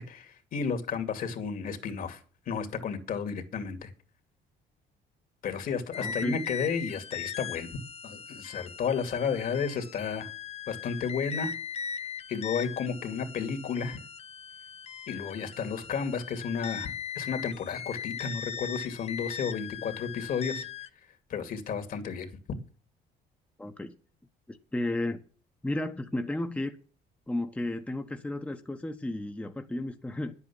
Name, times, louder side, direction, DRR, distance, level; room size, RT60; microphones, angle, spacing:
voice 1, 0.0-2.2 2.5-3.9 5.4-7.7 8.0-10.3 10.7-11.5 12.3-14.0 15.1-20.6 21.3-22.3, left 6 dB, 55° left, 2.5 m, -32 dB
sound 1, 5.9-20.9, left 7 dB, 40° left, 0.8 m, -39 dB
voice 2, 6.0-6.4 23.6-23.9 24.5-25.2 25.6-26.7 27.3-30.3, left 1 dB, 10° left, 1.1 m, -33 dB
10.5 x 8.2 x 7.2 m
cardioid pair, 110°, 17 cm